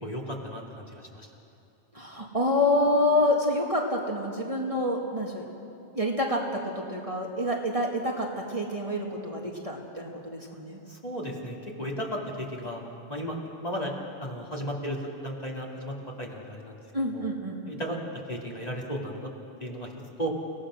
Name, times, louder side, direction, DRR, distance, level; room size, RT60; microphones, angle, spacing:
voice 1, 0.0-1.3 10.9-12.8 13.1-13.9 14.2-16.8 17.1-17.2 17.7-18.0 18.3-19.3 19.6-19.9 20.2-20.3, equal, 30° left, -2 dB, 2.6 m, -35 dB
voice 2, 1.9-5.5 5.9-10.8 16.9-17.8, left 1 dB, 30° right, -1 dB, 2.0 m, -27 dB
29.5 x 17.5 x 6.3 m, 2.7 s
omnidirectional pair, 1.2 m